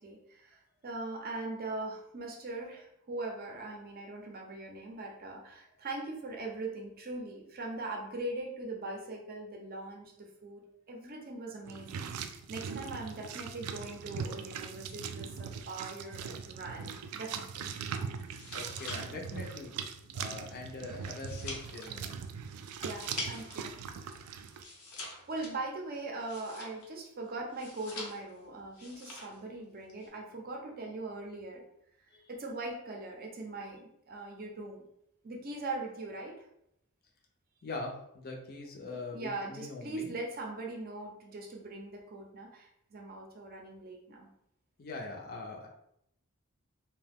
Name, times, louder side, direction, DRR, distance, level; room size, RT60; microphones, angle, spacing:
voice 1, 0.0-17.7 22.8-23.7 25.0-31.6 32.3-34.8 35.2-36.5 38.8-44.3, right 2 dB, 45° right, 1 dB, 0.6 m, -41 dB
sound 1, 11.7-24.6, right 6 dB, 85° right, 0.3 m, -41 dB
sound 2, 18.2-23.7 24.0-27.0 27.5-28.4 28.7-29.4 29.7-30.1, left 2 dB, 85° left, 0.8 m, -45 dB
voice 2, 18.5-19.7 20.1-22.2 32.1-32.3 37.6-40.1 44.8-45.7, left 3 dB, 45° left, 1 dB, 0.5 m, -42 dB
2.7 x 2.2 x 3.4 m, 0.76 s
head